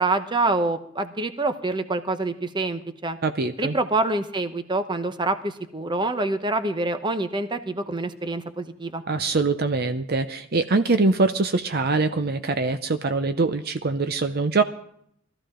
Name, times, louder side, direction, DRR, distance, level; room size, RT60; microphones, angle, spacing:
voice 1, 0.0-3.2 3.6-9.0, right 2 dB, 25° right, 9 dB, 0.9 m, -26 dB
voice 2, 3.2-3.8 9.1-14.6, right 3 dB, 50° right, 9 dB, 0.6 m, -23 dB
20.5 x 14.0 x 3.8 m, 0.71 s
head